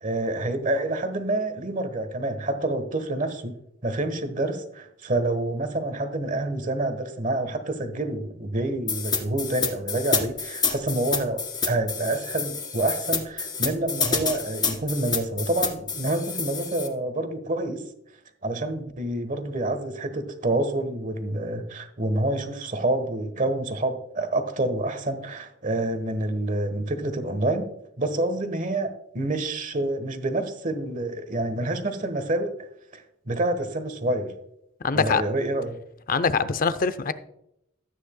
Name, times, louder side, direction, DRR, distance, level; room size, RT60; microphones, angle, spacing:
voice 1, 0.0-3.5 3.8-17.8 18.4-27.7 28.0-32.5 32.9-34.3 34.9-35.8, right 2 dB, 40° right, 1.2 m, -27 dB
sound 1, 8.9-16.9, left 5 dB, 20° left, 1.8 m, -28 dB
voice 2, 34.8-35.2 36.1-37.1, left 5 dB, 45° left, 0.6 m, -23 dB
13.5 x 9.2 x 2.2 m
head